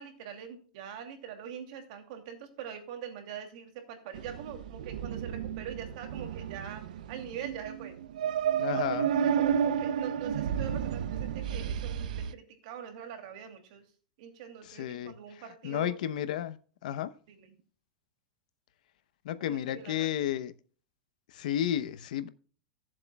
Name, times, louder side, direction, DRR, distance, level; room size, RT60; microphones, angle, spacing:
voice 1, 0.0-6.8 7.1-8.0 8.7-13.8 14.2-16.0 17.3-17.6 19.5-20.3, right 8 dB, 60° right, 2.6 m, -43 dB
sound 1, 4.1-12.3, right 8 dB, 85° right, 0.6 m, -32 dB
voice 2, 8.6-9.1 14.6-15.1 15.6-16.6 16.8-17.1 19.2-20.5 21.3-22.3, left 11 dB, 80° left, 0.8 m, -32 dB
17.0 x 7.5 x 2.3 m
supercardioid pair, 145°, 4 cm